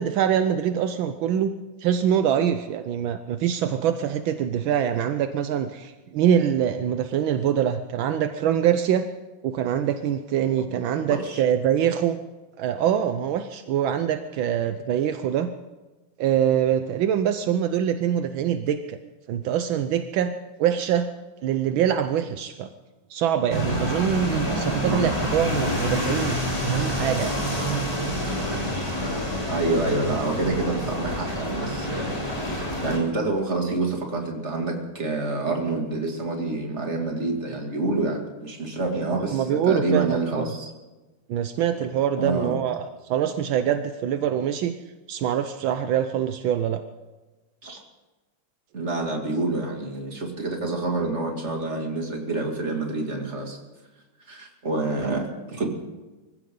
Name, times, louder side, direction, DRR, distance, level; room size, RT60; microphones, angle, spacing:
voice 1, 0.0-1.5 1.8-9.1 9.4-12.2 12.6-15.5 16.2-19.0 19.3-20.3 20.6-21.1 21.4-22.7 23.1-27.4 39.1-40.5 41.3-44.7 45.1-46.8, right 9 dB, 80° right, 9 dB, 1.5 m, -24 dB
voice 2, 11.1-11.4 24.8-25.1 29.5-40.7 42.2-42.6 47.6-47.8 48.7-53.6 54.3-55.7, right 2 dB, 35° right, 1 dB, 2.7 m, -27 dB
sound 1, 23.5-33.0, equal, 15° left, 3.7 m, -27 dB
24.5 x 15.5 x 3.9 m, 1.2 s
omnidirectional pair, 2.2 m